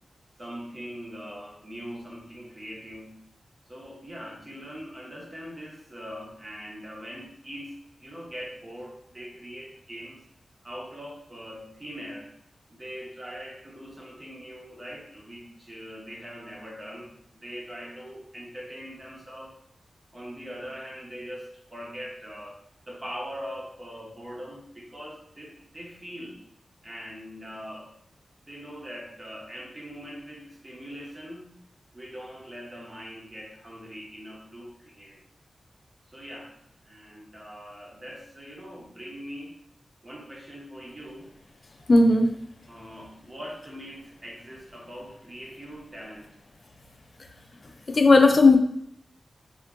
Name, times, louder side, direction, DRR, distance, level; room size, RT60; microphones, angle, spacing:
voice 1, 0.4-3.2 3.7-10.2 10.6-12.3 12.7-19.6 20.1-26.4 26.8-28.0 28.5-31.5 31.9-35.2 36.1-39.5 40.0-41.3 42.7-46.3, equal, 30° right, -2 dB, 0.9 m, -41 dB
voice 2, 41.9-42.3 47.9-48.6, left 3 dB, 50° left, 4 dB, 0.3 m, -16 dB
3.5 x 2.5 x 2.2 m, 0.72 s
cardioid pair, 70°, 0 cm